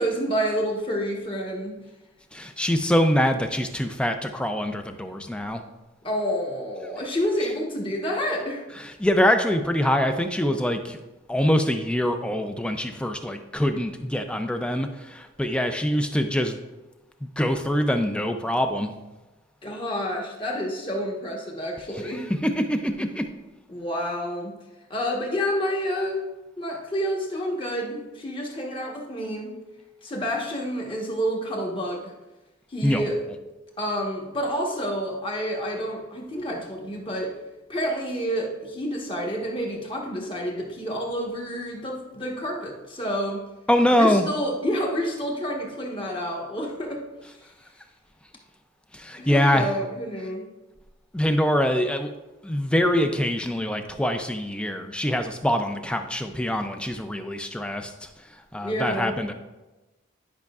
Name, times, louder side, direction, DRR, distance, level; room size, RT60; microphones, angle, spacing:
voice 1, 0.0-1.8 6.0-8.6 19.6-22.3 23.7-24.5 24.9-26.3 26.6-29.5 30.0-32.1 32.7-33.2 33.8-37.3 37.7-43.4 44.0-47.0 49.2-50.5 58.6-59.1, equal, 25° left, -1 dB, 1.2 m, -29 dB
voice 2, 2.3-5.6 8.8-11.0 11.3-16.6 17.4-18.9 22.0-23.3 32.8-33.0 43.7-44.3 48.9-49.7 51.1-52.1 52.4-57.9 58.5-59.3, equal, 5° left, 7 dB, 0.4 m, -24 dB
10.5 x 5.7 x 2.4 m, 1.1 s
head